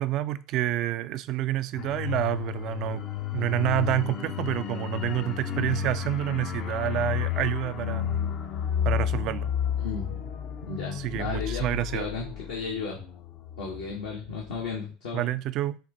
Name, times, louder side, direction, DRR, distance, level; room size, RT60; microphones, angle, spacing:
voice 1, 0.0-3.0 3.3-8.2 8.8-9.5 10.9-12.1 15.1-15.8, right 14 dB, 55° right, 0.3 m, -28 dB
sound 1, 1.8-14.1 14.4-14.6, left 9 dB, 50° left, 0.6 m, -31 dB
voice 2, 9.8-10.3 10.6-13.0 13.6-15.3, left 5 dB, 75° left, 1.0 m, -34 dB
4.3 x 2.5 x 3.8 m
figure-of-eight pair, 70°, 0 cm